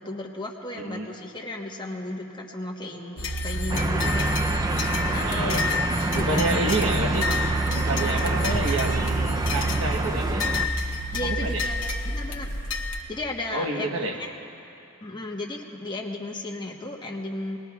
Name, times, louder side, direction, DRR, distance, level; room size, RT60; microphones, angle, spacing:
voice 1, 0.0-4.3 5.1-6.7 11.1-12.5 13.1-14.3 15.0-17.6, left 2 dB, 20° left, 0 dB, 1.1 m, -35 dB
voice 2, 0.7-1.1 5.2-5.7 6.1-7.4 7.7-10.5 11.2-11.7 13.5-14.2, right 2 dB, 70° right, 3 dB, 1.1 m, -29 dB
sound 1, 3.2-13.0, equal, 65° left, 1.2 m, -28 dB
sound 2, 3.7-10.7, right 2 dB, 15° right, 0.4 m, -28 dB
23.0 x 19.5 x 2.3 m, 2.9 s
head